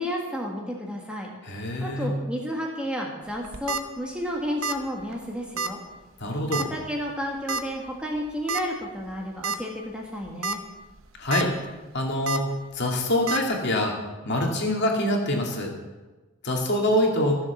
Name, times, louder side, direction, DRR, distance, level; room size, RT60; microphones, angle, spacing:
voice 1, 0.0-5.8 6.7-10.6, equal, 5° right, -1 dB, 1.6 m, -32 dB
voice 2, 1.4-2.1 6.2-6.6 11.2-11.5 11.9-12.4 12.7-13.9 14.2-15.7 16.4-17.4, left 1 dB, 50° left, 0 dB, 2.4 m, -24 dB
sound 1, 3.4-3.8 4.6-4.9 5.1-5.2 5.6-5.7 6.5-6.8 7.5-7.6 8.5-8.6 9.1-9.2 9.4-9.6 10.2-10.6 11.0-11.4 12.3-12.4 13.3-13.4, right 4 dB, 65° right, 0.8 m, -28 dB
15.0 x 7.4 x 7.1 m, 1.2 s
head